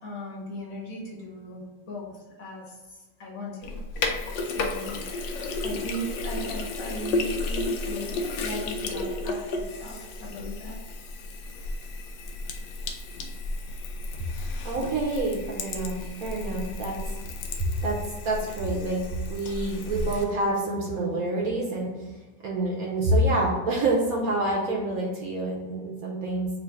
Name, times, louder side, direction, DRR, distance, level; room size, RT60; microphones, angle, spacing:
voice 1, 0.0-4.2 4.4-10.8, equal, 55° left, -5 dB, 1.4 m, -38 dB
Sink (filling or washing), 3.6-20.2, left 2 dB, 80° left, 1.2 m, -33 dB
voice 2, 14.6-17.0 17.8-18.0 18.2-19.0 19.3-21.9 22.4-26.5, right 2 dB, 65° right, -2 dB, 1.0 m, -27 dB
3.8 x 2.5 x 4.5 m, 1.3 s
omnidirectional pair, 1.9 m